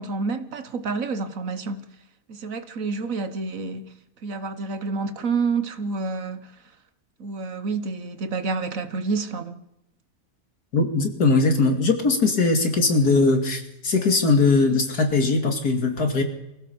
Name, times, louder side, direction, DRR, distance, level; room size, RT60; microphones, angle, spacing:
voice 1, 0.0-1.8 2.3-3.9 4.2-6.5 7.2-9.6, right 4 dB, 60° right, 1.6 m, -28 dB
voice 2, 10.7-16.2, left 3 dB, 90° left, 3.0 m, -20 dB
24.0 x 15.5 x 7.1 m
omnidirectional pair, 1.6 m